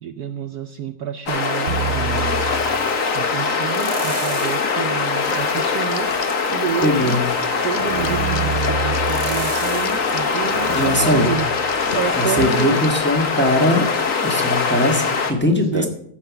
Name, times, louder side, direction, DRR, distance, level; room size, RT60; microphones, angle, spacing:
voice 1, 0.0-2.5 3.1-6.1 6.5-7.2 7.6-12.9 15.4-15.9, right 9 dB, 65° right, 8 dB, 1.0 m, -29 dB
sound 1, 1.3-15.3, left 5 dB, 45° left, 1.6 m, -22 dB
sound 2, 1.7-3.1 3.7-4.8 5.2-11.9 12.4-12.5, right 5 dB, 45° right, 0.8 m, -29 dB
sound 3, 5.2-13.4, left 5 dB, 65° left, 0.4 m, -38 dB
voice 2, 6.8-7.2 10.8-11.3 12.2-13.9 14.2-15.9, left 1 dB, 5° left, 3 dB, 1.3 m, -20 dB
15.0 x 5.6 x 7.0 m, 0.68 s
omnidirectional pair, 2.1 m